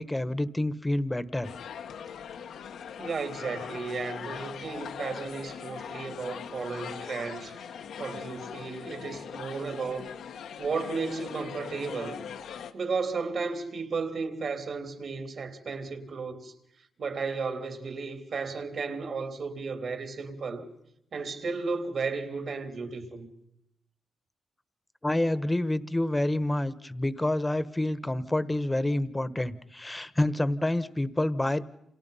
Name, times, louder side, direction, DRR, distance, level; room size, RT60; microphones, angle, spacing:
voice 1, 0.0-1.5 25.0-31.7, left 1 dB, 15° left, 1.3 m, -28 dB
sound 1, 1.4-12.7, left 7 dB, 90° left, 1.7 m, -41 dB
voice 2, 3.0-7.6 8.0-10.1 10.6-12.2 12.7-16.5 17.0-20.6 21.1-23.3, right 4 dB, 60° right, 3.5 m, -34 dB
29.5 x 28.0 x 5.7 m
cardioid pair, 90°, 0 cm